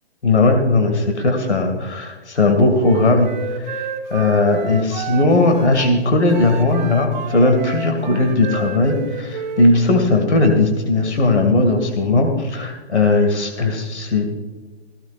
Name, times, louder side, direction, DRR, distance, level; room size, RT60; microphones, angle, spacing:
voice 1, 0.2-14.3, left 2 dB, 85° left, 4 dB, 2.2 m, -17 dB
Wind instrument woodwind instrument, 2.8-6.0 6.3-9.7, right 6 dB, 45° right, 1.7 m, -31 dB
16.0 x 13.0 x 2.5 m, 1.3 s
hypercardioid pair, 150°, 33 cm